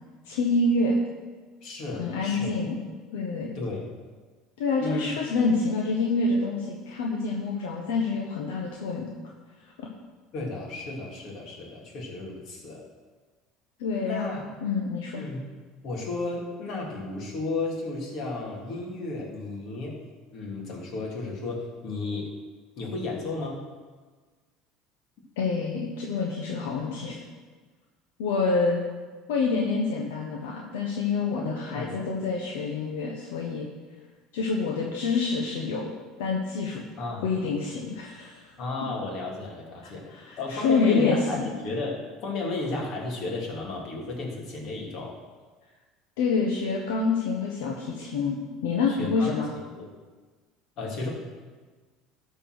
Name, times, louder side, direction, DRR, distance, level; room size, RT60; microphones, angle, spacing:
voice 1, 0.3-1.0 2.0-2.8 3.1-3.5 4.6-9.1 13.8-14.3 14.6-15.2 25.4-27.2 28.2-28.9 29.3-33.7 34.3-35.9 36.2-36.8 37.2-38.5 39.8-41.5 46.2-49.5, left 4 dB, 85° left, -1 dB, 1.2 m, -27 dB
voice 2, 1.6-2.5 3.5-3.9 4.8-5.1 10.3-12.8 14.0-14.5 15.1-15.5 15.8-20.0 20.3-22.3 22.8-23.6 31.3-32.0 37.0-37.3 38.6-45.1 48.9-49.3 49.8-49.9 50.8-51.1, left 2 dB, 60° left, -2 dB, 2.7 m, -33 dB
12.5 x 4.5 x 6.2 m, 1.4 s
supercardioid pair, 105°, 0 cm